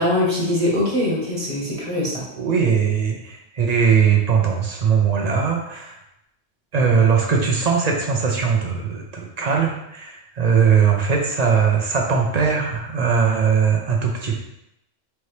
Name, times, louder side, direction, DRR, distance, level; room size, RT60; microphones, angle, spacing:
voice 1, 0.0-2.2, left 1 dB, 25° right, -5 dB, 1.0 m, -22 dB
voice 2, 2.4-5.9 6.7-14.4, right 6 dB, 55° right, 0 dB, 0.4 m, -20 dB
4.5 x 2.8 x 3.2 m, 0.82 s
omnidirectional pair, 1.4 m